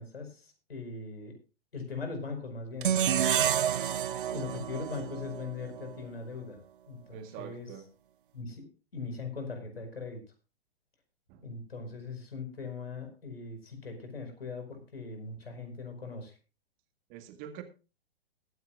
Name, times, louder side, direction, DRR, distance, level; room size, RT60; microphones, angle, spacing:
voice 1, 0.0-1.4 1.7-3.9 4.3-6.6 6.9-7.7 8.3-10.2 11.4-16.3, left 4 dB, 70° left, 5 dB, 5.1 m, -40 dB
sound 1, 2.8-6.0, right 9 dB, 55° right, 0.7 m, -29 dB
voice 2, 7.1-7.9 11.3-11.5 17.1-17.6, right 10 dB, 30° right, 7 dB, 1.9 m, -45 dB
21.0 x 9.7 x 2.5 m, 0.32 s
figure-of-eight pair, 115°, 31 cm